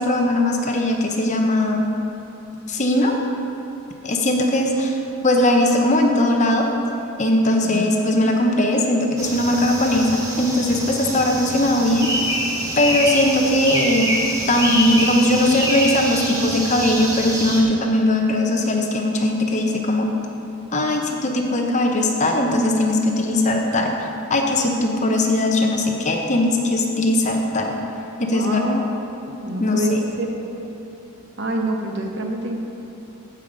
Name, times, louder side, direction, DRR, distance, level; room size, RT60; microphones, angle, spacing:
voice 1, 0.0-1.9 2.7-3.2 4.0-6.7 7.2-10.1 10.4-12.1 12.8-14.1 14.5-20.1 20.7-23.9 24.3-27.7 28.2-28.8 29.3-30.0, left 1 dB, 30° left, 2 dB, 0.8 m, -19 dB
sound 1, 9.2-17.6, equal, 15° right, 1.0 m, -26 dB
voice 2, 28.3-28.8 29.4-30.3 30.5-30.7 31.4-32.6, right 1 dB, 50° right, 2 dB, 1.0 m, -26 dB
14.5 x 5.5 x 5.1 m, 2.8 s
head